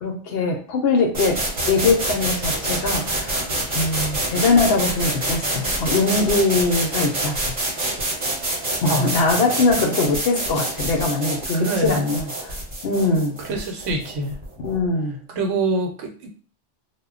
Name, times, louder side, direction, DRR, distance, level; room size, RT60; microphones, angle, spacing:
voice 1, 0.0-1.4 1.7-3.4 3.7-7.5 8.8-12.6 12.8-13.4 14.6-15.2, left 3 dB, 65° left, 2 dB, 0.7 m, -22 dB
sound 1, 1.1-14.9, right 1 dB, 40° right, 0.9 m, -26 dB
voice 2, 8.9-9.3 11.5-12.2 13.5-14.4 15.3-16.3, right 2 dB, 80° right, 2 dB, 1.0 m, -25 dB
2.1 x 2.0 x 3.6 m, 0.43 s
omnidirectional pair, 1.2 m